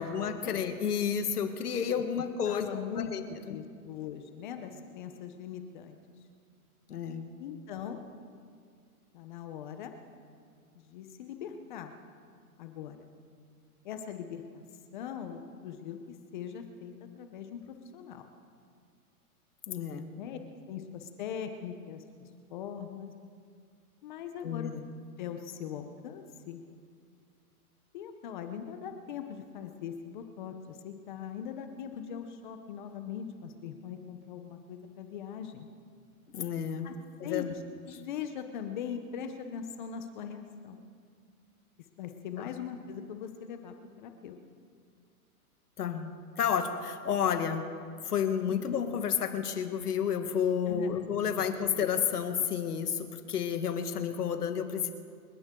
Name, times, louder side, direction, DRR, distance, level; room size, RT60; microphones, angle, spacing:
voice 1, 0.0-3.6 6.9-7.3 19.7-20.1 24.4-24.8 36.3-36.9 37.2-37.5 37.9-38.0 42.4-42.5 45.8-46.1 46.4-47.7 48.1-54.9, left 7 dB, 85° left, 7 dB, 1.8 m, -31 dB
voice 2, 2.5-6.0 7.4-8.0 9.1-9.9 10.8-11.9 12.6-13.1 13.8-14.6 14.9-18.3 20.2-20.4 20.7-22.0 22.5-23.1 24.0-24.7 25.2-26.6 27.9-35.7 36.8-36.9 37.2-37.5 37.9-40.8 42.0-44.4 48.4-48.5 50.7-51.0 51.3-51.5, left 8 dB, 30° left, 7 dB, 0.9 m, -41 dB
30.0 x 11.0 x 3.8 m, 2.3 s
hypercardioid pair, 160°, 45 cm